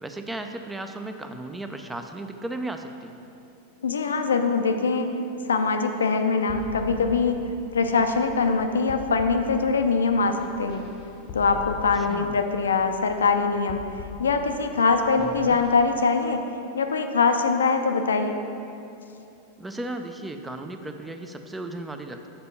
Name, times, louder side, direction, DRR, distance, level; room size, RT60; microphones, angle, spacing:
voice 1, 0.0-3.1 11.9-12.4 15.2-15.6 19.6-22.3, right 2 dB, 10° right, 6 dB, 0.4 m, -35 dB
voice 2, 3.8-5.1 5.5-7.4 7.7-10.8 11.3-13.8 14.2-16.4 16.7-18.3, left 4 dB, 70° left, 6 dB, 0.4 m, -23 dB
sound 1, 6.5-16.0, left 4 dB, 35° left, 0.7 m, -41 dB
6.8 x 4.3 x 5.6 m, 2.7 s
figure-of-eight pair, 90°, 0 cm